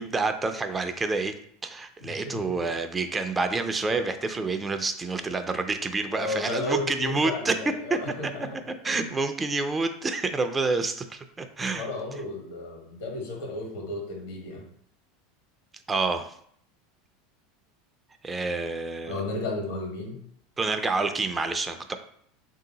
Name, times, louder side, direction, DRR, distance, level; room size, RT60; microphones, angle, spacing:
voice 1, 0.0-1.3 1.6-7.5 7.9-8.3 8.8-11.9 15.9-16.3 18.2-19.2 20.6-21.9, right 3 dB, 20° right, 8 dB, 0.4 m, -28 dB
voice 2, 2.0-2.5 6.1-9.1 11.7-14.6 19.1-20.2, left 2 dB, 75° left, 1 dB, 1.3 m, -33 dB
3.6 x 2.8 x 3.9 m, 0.64 s
hypercardioid pair, 100°, 0 cm